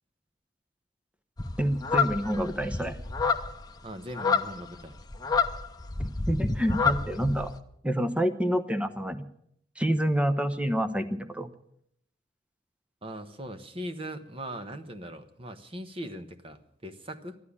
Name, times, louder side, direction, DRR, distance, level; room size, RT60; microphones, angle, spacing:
sound 1, 1.4-7.5, left 5 dB, 20° left, 0.9 m, -29 dB
voice 1, 1.6-3.0 6.0-7.5 7.8-9.2 9.8-11.5, equal, 5° right, 9 dB, 0.9 m, -28 dB
voice 2, 3.8-5.0 13.0-17.4, equal, 30° right, 8 dB, 1.2 m, -40 dB
13.5 x 12.0 x 8.6 m, 0.71 s
head